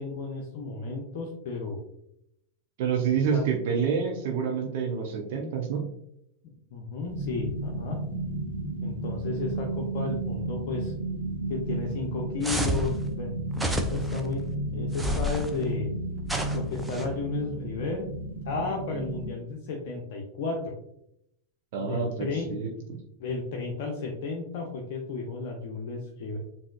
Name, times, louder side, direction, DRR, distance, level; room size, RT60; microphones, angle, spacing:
voice 1, 0.0-1.8 3.1-3.4 6.7-8.0 8.8-10.9 11.5-13.3 13.6-14.4 14.7-15.9 16.5-18.1 18.5-20.8 21.8-22.9 23.2-26.4, left 3 dB, 50° left, 0 dB, 0.7 m, -33 dB
voice 2, 2.8-5.8 21.7-23.0, right 6 dB, 50° right, 2 dB, 0.7 m, -28 dB
sound 1, 7.1-19.3, right 2 dB, 85° right, 0.8 m, -33 dB
sound 2, 12.4-12.9 13.5-14.2 14.9-15.5 16.2-17.1, equal, 5° right, 0.5 m, -29 dB
7.3 x 2.8 x 2.3 m, 0.74 s
figure-of-eight pair, 90°, 0 cm